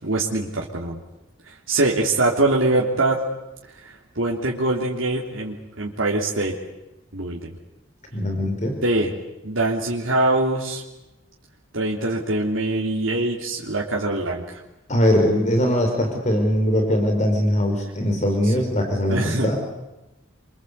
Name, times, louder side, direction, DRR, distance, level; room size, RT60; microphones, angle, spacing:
voice 1, 0.0-1.0 1.5-3.2 3.8-6.5 7.1-7.5 8.8-9.1 9.4-10.8 11.7-14.4 18.4-18.5 19.1-19.5, right 2 dB, 85° right, -2 dB, 3.4 m, -23 dB
voice 2, 8.1-8.8 14.9-19.6, equal, 35° left, 3 dB, 4.7 m, -21 dB
27.5 x 25.0 x 8.3 m, 0.98 s
head